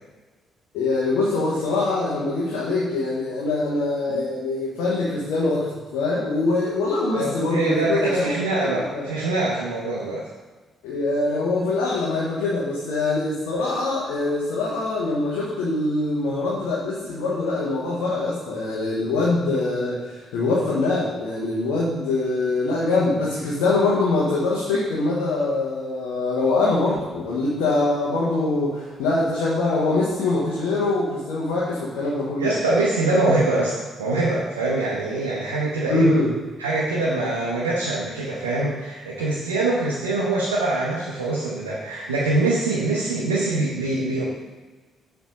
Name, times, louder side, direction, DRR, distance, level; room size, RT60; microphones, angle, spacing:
voice 1, 0.7-9.1 10.8-20.1 20.3-32.5 35.9-36.3, left 2 dB, 70° left, -5 dB, 1.1 m, -23 dB
voice 2, 7.1-10.3 32.4-36.2 36.6-44.2, right 2 dB, 80° right, -5 dB, 0.8 m, -24 dB
7.2 x 3.4 x 5.3 m, 1.3 s
figure-of-eight pair, 40°, 0 cm